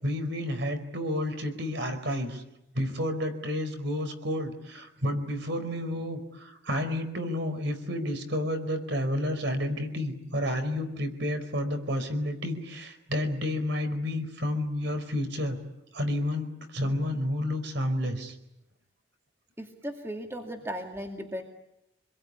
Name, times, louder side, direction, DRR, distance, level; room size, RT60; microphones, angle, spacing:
voice 1, 0.0-2.4 2.7-15.6 15.9-18.3, left 1 dB, 60° right, 8 dB, 4.7 m, -30 dB
voice 2, 19.6-21.4, equal, 10° right, 2 dB, 2.3 m, -36 dB
28.0 x 21.5 x 9.8 m, 0.87 s
head